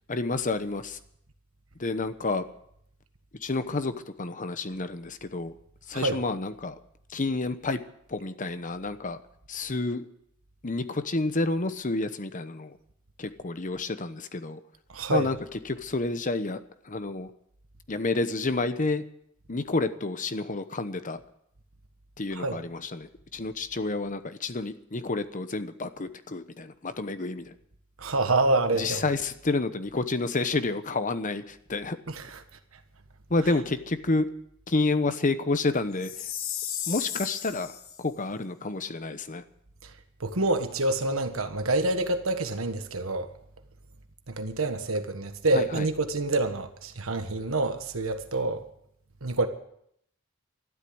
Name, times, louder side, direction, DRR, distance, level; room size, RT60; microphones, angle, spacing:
voice 1, 0.1-1.0 1.8-2.5 3.4-5.5 5.9-6.8 7.1-7.8 8.1-9.2 9.5-10.1 10.6-12.8 13.2-14.6 15.1-15.4 15.6-16.6 16.8-17.3 17.9-19.0 19.5-21.2 22.2-27.5 28.8-32.0 33.3-34.3 34.7-36.3 36.9-39.4 45.5-45.9, left 3 dB, 40° left, 1.0 m, -29 dB
voice 2, 14.9-15.3 22.3-22.6 28.0-29.0 32.1-32.4 39.8-39.9 40.2-43.3 44.3-48.6 49.2-49.5, right 2 dB, 80° right, 1.5 m, -27 dB
Chime, 36.0-38.0, left 10 dB, 85° left, 1.5 m, -34 dB
13.0 x 12.0 x 7.8 m
head